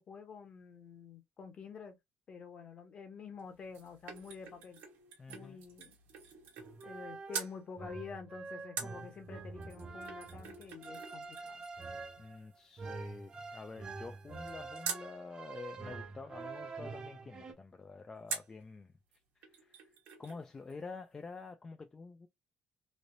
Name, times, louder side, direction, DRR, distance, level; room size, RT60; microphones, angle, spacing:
voice 1, 0.0-1.9 2.3-4.8 5.3-6.0 6.8-11.7, left 5 dB, 35° left, 0.8 m, -48 dB
sound 1, 3.4-7.0 7.3-7.6 8.8-15.1 18.3-18.6 19.1-19.2 19.4-20.4 20.7-20.8, right 6 dB, 85° right, 1.1 m, -46 dB
voice 2, 5.2-5.6 12.2-18.9 19.4-22.3, left 4 dB, 20° left, 0.3 m, -48 dB
sound 2, 6.6-17.5, right 4 dB, 25° right, 0.7 m, -46 dB
3.2 x 2.7 x 2.5 m
cardioid pair, 165°, 3 cm